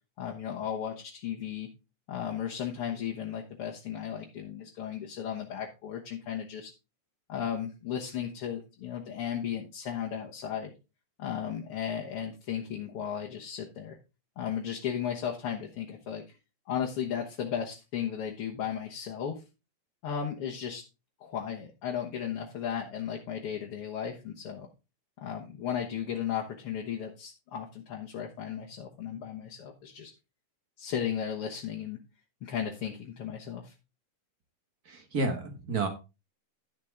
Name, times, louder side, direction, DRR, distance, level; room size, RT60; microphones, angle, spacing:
voice 1, 0.2-1.7 2.1-6.7 7.3-10.7 11.2-14.0 14.4-16.2 16.7-19.4 20.0-20.8 21.2-24.7 25.2-30.1 30.8-32.0 32.4-33.7, left 8 dB, 55° left, -1 dB, 1.7 m, -35 dB
voice 2, 34.9-35.9, right 3 dB, 45° right, 6 dB, 1.2 m, -30 dB
11.5 x 7.5 x 3.6 m, 0.27 s
omnidirectional pair, 3.8 m